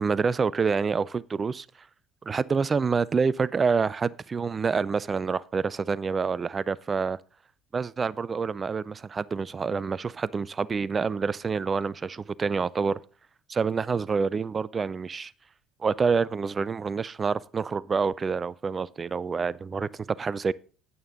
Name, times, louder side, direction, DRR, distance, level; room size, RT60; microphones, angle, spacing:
voice 1, 0.0-1.7 2.2-7.2 7.7-13.0 13.5-15.3 15.8-20.5, right 5 dB, 30° right, 0.4 m, -27 dB
8.8 x 8.5 x 3.9 m
hypercardioid pair, 60°, 0 cm